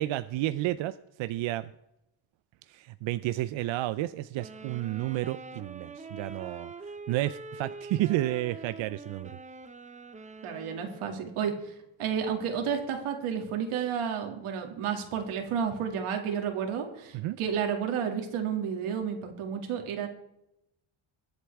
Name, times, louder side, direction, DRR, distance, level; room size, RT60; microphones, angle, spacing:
voice 1, 0.0-1.7 2.7-9.4 17.1-17.4, right 15 dB, 65° right, 13 dB, 0.5 m, -31 dB
sound 1, 4.3-11.4, right 4 dB, 15° right, 0.5 m, -44 dB
voice 2, 10.4-11.7 12.0-20.1, right 7 dB, 85° right, 4 dB, 2.4 m, -31 dB
21.5 x 8.1 x 3.4 m, 0.85 s
cardioid pair, 145°, 49 cm